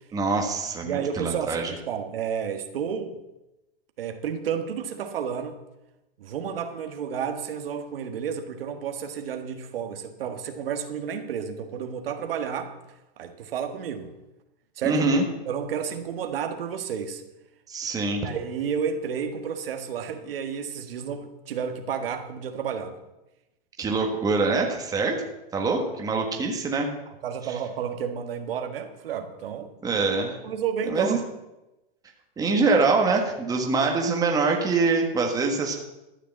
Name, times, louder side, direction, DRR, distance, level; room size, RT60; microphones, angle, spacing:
voice 1, 0.1-1.7 14.8-15.2 17.7-18.2 23.8-25.2 25.5-26.9 27.5-27.6 29.8-30.4 30.8-31.2 32.4-35.7, right 3 dB, 10° right, 1 dB, 1.5 m, -24 dB
voice 2, 0.8-3.1 4.0-5.6 6.2-12.7 13.2-14.1 14.8-15.1 15.5-17.2 18.2-23.0 27.2-29.7 30.4-31.2, right 7 dB, 70° right, 6 dB, 1.6 m, -31 dB
13.0 x 6.7 x 7.5 m, 0.96 s
hypercardioid pair, 145°, 30 cm